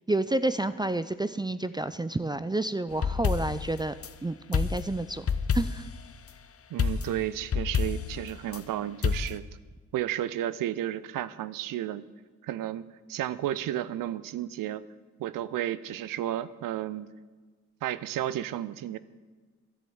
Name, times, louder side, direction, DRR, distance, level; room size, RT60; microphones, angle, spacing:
voice 1, 0.1-3.9 4.2-5.3 5.5-5.9, right 2 dB, 15° right, 13 dB, 0.5 m, -29 dB
sound 1, 2.9-4.1 4.5-6.0 6.8-8.6 9.0-9.4, left 6 dB, 45° left, 0.9 m, -29 dB
voice 2, 6.7-9.4 9.9-12.0 12.4-14.8 15.2-17.1 17.8-19.0, right 12 dB, 75° right, 16 dB, 0.6 m, -32 dB
11.0 x 7.6 x 8.6 m, 1.4 s
supercardioid pair, 50°, 33 cm